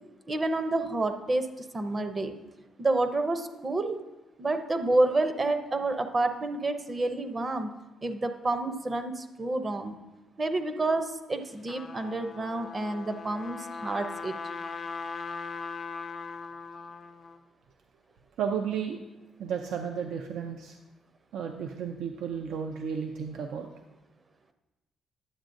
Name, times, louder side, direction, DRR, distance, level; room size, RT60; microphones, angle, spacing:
voice 1, 0.3-2.3 2.8-4.0 4.4-7.7 8.0-10.0 10.4-14.4, right 2 dB, 30° right, 8 dB, 0.6 m, -29 dB
Trumpet, 11.4-17.4, left 4 dB, 40° left, 0.5 m, -39 dB
voice 2, 18.4-19.0 19.4-20.8 21.3-23.7, right 7 dB, 80° right, 4 dB, 0.4 m, -33 dB
10.0 x 7.2 x 2.6 m, 1.1 s
cardioid pair, 90°, 0 cm